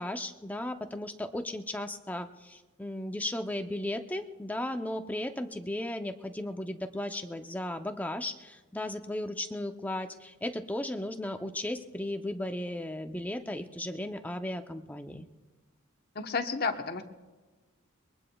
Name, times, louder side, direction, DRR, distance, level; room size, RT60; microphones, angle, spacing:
voice 1, 0.0-15.3, left 1 dB, 10° left, 6 dB, 0.6 m, -35 dB
voice 2, 16.1-17.0, left 4 dB, 50° left, 5 dB, 1.0 m, -31 dB
23.0 x 21.5 x 2.3 m, 1.2 s
head